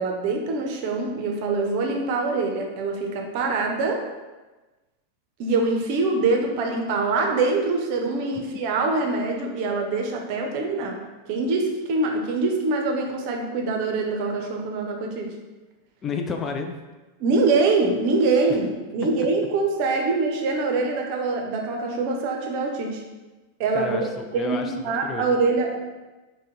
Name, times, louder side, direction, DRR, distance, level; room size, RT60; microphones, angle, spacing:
voice 1, 0.0-4.0 5.4-11.0 11.3-15.3 17.2-23.0 23.6-24.0 24.3-25.8, right 3 dB, 45° right, 2 dB, 0.6 m, -24 dB
voice 2, 16.0-16.7 19.2-19.3 23.7-25.3, left 5 dB, 25° left, 4 dB, 0.3 m, -31 dB
3.6 x 2.2 x 4.4 m, 1.2 s
figure-of-eight pair, 90°, 0 cm